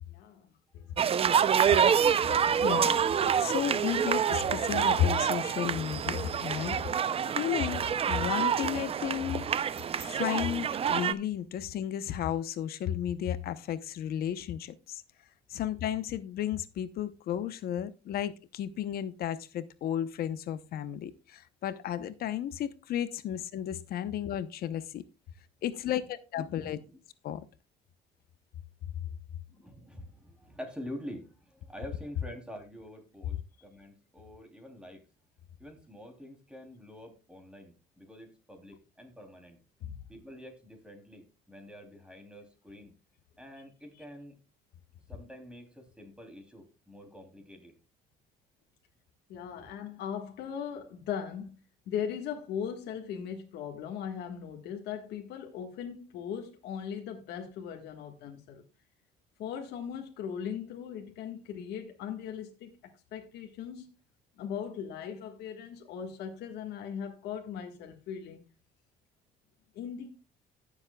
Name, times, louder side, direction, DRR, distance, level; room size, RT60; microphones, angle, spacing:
voice 1, 0.1-1.4 39.8-40.0 49.3-51.5 51.9-58.6 59.4-62.7 63.1-63.9 64.4-68.4 69.7-70.2, left 8 dB, 80° left, 1.6 m, -39 dB
sound 1, 1.0-11.1, right 8 dB, 35° right, 0.5 m, -27 dB
voice 2, 2.6-3.0 3.4-6.8 7.4-9.5 10.0-15.0 15.5-25.0 25.6-26.8 27.2-27.4, left 10 dB, 65° left, 0.8 m, -33 dB
voice 3, 26.4-27.0 29.5-35.0 35.6-39.6 40.1-42.9 43.4-44.4 45.1-47.8 49.5-49.7, equal, 5° right, 3.0 m, -47 dB
16.5 x 7.3 x 2.3 m
cardioid pair, 110°, 17 cm